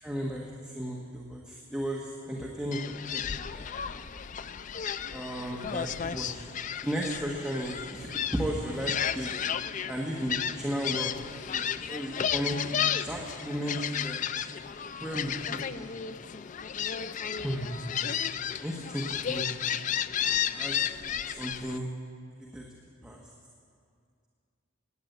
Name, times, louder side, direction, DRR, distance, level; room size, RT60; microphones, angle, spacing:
voice 1, 0.0-2.8 3.1-3.2 3.5-4.0 5.1-6.4 6.8-9.3 9.9-14.2 15.0-16.0 17.4-17.7 18.6-19.5 20.5-20.8 21.0-21.9 22.5-22.6 23.0-23.2, equal, 5° right, -3 dB, 1.3 m, -35 dB
Gull seagull, 2.7-21.8, left 9 dB, 40° left, 0.4 m, -33 dB
18.0 x 9.6 x 8.0 m, 2.2 s
head